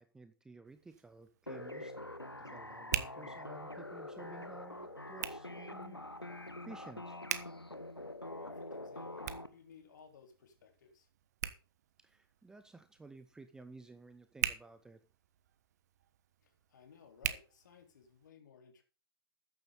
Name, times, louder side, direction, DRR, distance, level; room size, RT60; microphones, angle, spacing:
voice 1, 0.0-7.2 12.0-15.0, right 3 dB, 5° right, 10 dB, 0.8 m, -55 dB
Hands, 0.6-18.3, right 10 dB, 45° right, 1.1 m, -45 dB
sound 1, 1.5-9.5, left 1 dB, 90° left, 1.5 m, -45 dB
voice 2, 8.4-11.1 16.4-18.8, left 6 dB, 50° left, 4 dB, 3.8 m, -59 dB
13.5 x 9.7 x 3.9 m, 0.34 s
figure-of-eight pair, 120°, 12 cm